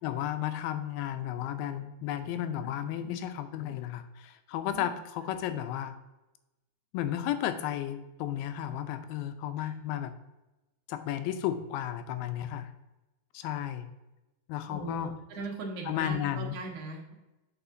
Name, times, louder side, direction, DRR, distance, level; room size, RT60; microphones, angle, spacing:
voice 1, 0.0-6.0 6.9-10.1 10.9-12.7 13.3-13.9 14.5-15.1 15.9-16.6, left 11 dB, 90° left, 9 dB, 2.4 m, -33 dB
voice 2, 14.6-17.1, right 3 dB, 55° right, -1 dB, 2.0 m, -39 dB
6.9 x 5.6 x 2.6 m, 1.0 s
omnidirectional pair, 4.2 m